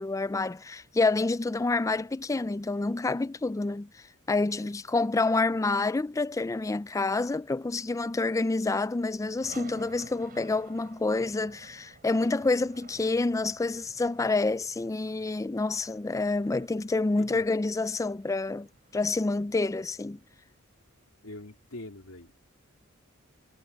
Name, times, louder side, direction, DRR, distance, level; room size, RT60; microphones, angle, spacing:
voice 1, 0.0-3.9 4.3-20.2, left 3 dB, 15° left, 0.4 m, -28 dB
sound 1, 9.4-21.6, right 3 dB, 45° right, 4.6 m, -54 dB
voice 2, 21.2-22.5, left 2 dB, 80° left, 3.2 m, -44 dB
head